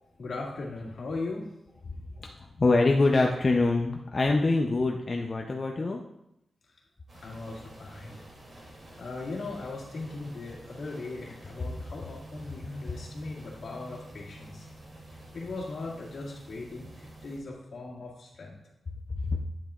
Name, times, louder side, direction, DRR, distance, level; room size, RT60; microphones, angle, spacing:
voice 1, 0.2-1.5 7.1-8.2 8.6-8.7 9.0-14.7 15.3-18.6, left 3 dB, 75° left, -3 dB, 1.9 m, -38 dB
voice 2, 2.2-6.0 19.3-19.4, left 3 dB, 40° left, 1 dB, 0.5 m, -25 dB
sound 1, 7.1-17.4, right 1 dB, 50° right, 2.6 m, -49 dB
9.1 x 7.6 x 2.4 m, 0.82 s
wide cardioid pair, 120°, 0 cm